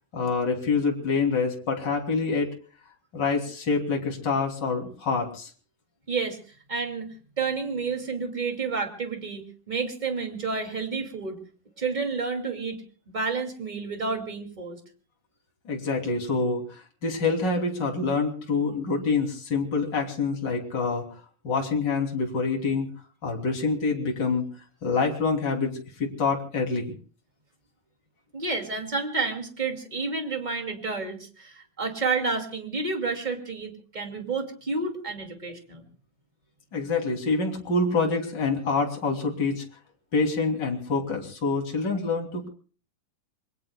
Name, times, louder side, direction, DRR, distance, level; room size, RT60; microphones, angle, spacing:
voice 1, 0.1-2.5 3.1-5.5 15.6-21.0 21.4-22.9 23.2-24.4 24.8-26.9 36.7-39.6 40.1-42.5, left 4 dB, 30° left, 1 dB, 3.2 m, -26 dB
voice 2, 6.1-6.4 6.7-11.4 11.8-12.8 13.1-14.8 28.3-35.9, right 4 dB, 15° right, 4 dB, 1.9 m, -30 dB
27.5 x 23.0 x 2.3 m, 0.40 s
omnidirectional pair, 4.0 m